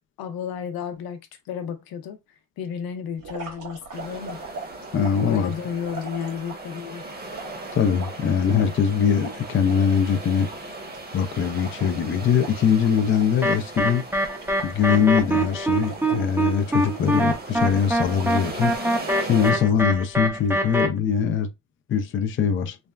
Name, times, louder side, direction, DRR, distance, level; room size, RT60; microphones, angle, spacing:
voice 1, 0.2-2.2 2.6-4.4 5.3-7.0, left 7 dB, 80° left, 0.7 m, -32 dB
sound 1, 3.2-6.8 7.3-9.8 10.2-10.3 10.5-13.4 13.7-13.9 14.3-16.8 17.3-17.8 18.1-18.8 19.3-19.9 20.3-20.8, right 3 dB, 60° right, 1.7 m, -41 dB
sound 2, 3.9-19.5, right 2 dB, 25° right, 1.0 m, -38 dB
voice 2, 4.9-5.5 7.7-10.5 11.1-14.0 14.6-18.7 19.2-21.5 21.9-22.8, left 7 dB, 35° left, 0.4 m, -22 dB
sound 3, 13.4-20.9, right 1 dB, 5° right, 0.6 m, -23 dB
3.3 x 2.1 x 2.3 m
cardioid pair, 85°, 36 cm